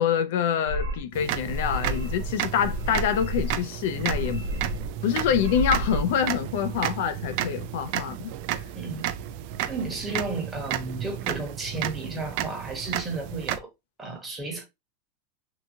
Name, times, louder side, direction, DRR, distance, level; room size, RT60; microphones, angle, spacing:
voice 1, 0.0-4.4 5.0-8.3, left 8 dB, 70° left, 0.4 m, -26 dB
sound 1, 0.7-1.0 1.5-2.3 2.6-3.6 3.9-4.9 5.2-6.0, equal, 90° right, 1.1 m, -31 dB
sound 2, 1.1-13.6, right 11 dB, 55° right, 0.3 m, -32 dB
voice 2, 8.7-9.1 9.7-13.7 14.0-14.6, right 3 dB, 15° right, 1.1 m, -33 dB
2.8 x 2.3 x 2.7 m
supercardioid pair, 130°, 0 cm